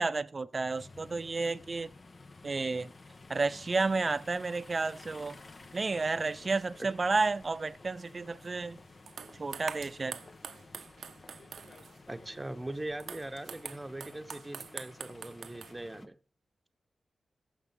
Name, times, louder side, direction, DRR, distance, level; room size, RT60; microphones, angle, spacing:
voice 1, 0.0-1.9 2.4-2.9 3.3-5.4 5.7-8.8 9.3-10.2, right 3 dB, 40° right, 0.7 m, -31 dB
sound 1, 0.7-16.1, left 3 dB, 45° left, 1.2 m, -53 dB
sound 2, 8.4-8.5 9.1-12.0 12.7-15.7, right 7 dB, 85° right, 0.8 m, -45 dB
voice 2, 12.1-16.2, right 1 dB, 15° right, 1.0 m, -41 dB
15.5 x 6.8 x 3.6 m
cardioid pair, 70°, 0 cm